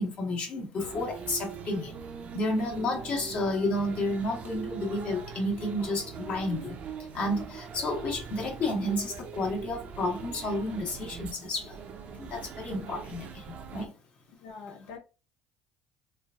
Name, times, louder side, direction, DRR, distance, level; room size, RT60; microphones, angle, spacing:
voice 1, 0.0-2.0 2.3-6.8 7.1-11.8 12.2-13.9, left 1 dB, 50° left, 1.2 m, -31 dB
sound 1, 0.8-13.9, right 6 dB, 45° right, 0.5 m, -42 dB
voice 2, 14.3-15.0, left 5 dB, 85° left, 0.7 m, -44 dB
3.0 x 2.4 x 2.4 m
supercardioid pair, 100°, 3 cm